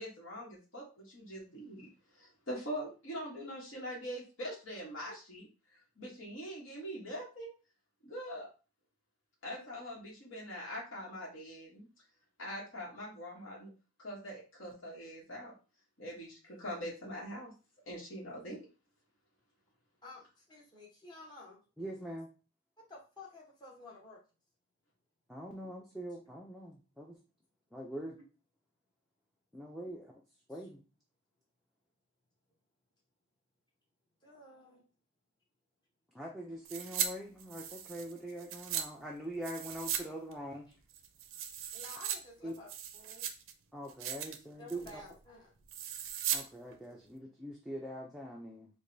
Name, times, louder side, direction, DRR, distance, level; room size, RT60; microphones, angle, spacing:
voice 1, 0.0-7.5 8.0-8.5 9.4-11.9 12.4-13.7 14.0-15.5 16.0-17.5 17.9-18.7, equal, 60° left, -4 dB, 1.2 m, -43 dB
voice 2, 20.0-21.6 22.9-24.2 28.2-28.3 30.5-30.7 34.2-34.8 40.7-40.8 41.7-43.2 44.0-44.3 44.6-45.5, left 2 dB, 20° left, -4 dB, 1.0 m, -53 dB
voice 3, 21.8-22.3 25.3-27.2 27.7-28.2 29.5-30.1 30.5-30.8 36.1-40.7 42.4-42.5 43.7-45.0 46.3-48.7, right 1 dB, ahead, -3 dB, 0.4 m, -43 dB
sound 1, 36.6-37.1 37.4-38.8 39.4-40.0 40.3-40.4 40.9-42.2 42.5-43.5 43.9-44.4 44.7-45.0 45.7-46.4 46.7-46.8, right 9 dB, 70° right, 0.4 m, -37 dB
4.7 x 2.2 x 2.7 m, 0.34 s
head